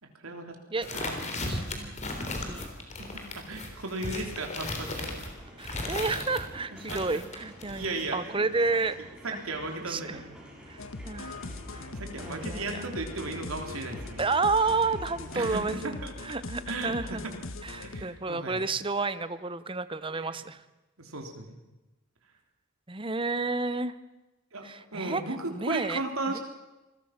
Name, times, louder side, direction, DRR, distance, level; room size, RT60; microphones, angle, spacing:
voice 1, 0.0-0.6 0.8-1.3 3.0-5.1 6.9-7.0 7.7-8.4 9.2-10.3 11.9-14.2 15.3-16.1 16.7-17.3 17.8-18.6 20.1-20.4 21.0-21.6 24.5-26.4, right 2 dB, 85° right, 3 dB, 3.5 m, -36 dB
sound 1, 0.8-6.4 6.8-8.1, left 2 dB, 35° left, 3.5 m, -36 dB
voice 2, 1.5-2.7 5.6-7.8 8.1-9.4 9.9-10.2 10.7-11.5 11.7-11.9 12.1-12.8 14.2-17.2 17.6-20.6 22.9-23.9 24.6-25.2 25.5-26.0 26.3-26.4, right 3 dB, 25° right, 13 dB, 0.8 m, -31 dB
sound 2, 4.7-15.6, equal, 5° right, 5.6 m, -49 dB
sound 3, 10.8-18.0, left 2 dB, 70° left, 1.3 m, -41 dB
27.0 x 20.0 x 6.0 m, 1.1 s
head